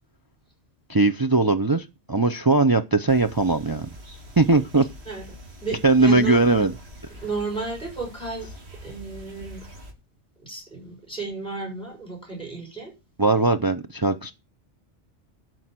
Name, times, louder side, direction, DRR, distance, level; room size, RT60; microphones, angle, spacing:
voice 1, 0.9-3.9 4.4-4.9 5.8-6.7 13.2-14.3, right 3 dB, 25° right, 0.5 m, -20 dB
sound 1, 3.1-9.9, left 1 dB, 70° right, 2.2 m, -44 dB
voice 2, 5.6-6.4 7.2-8.5 8.8-9.6 10.4-12.9, right 4 dB, 5° left, 6.1 m, -33 dB
12.5 x 4.7 x 7.5 m
omnidirectional pair, 1.1 m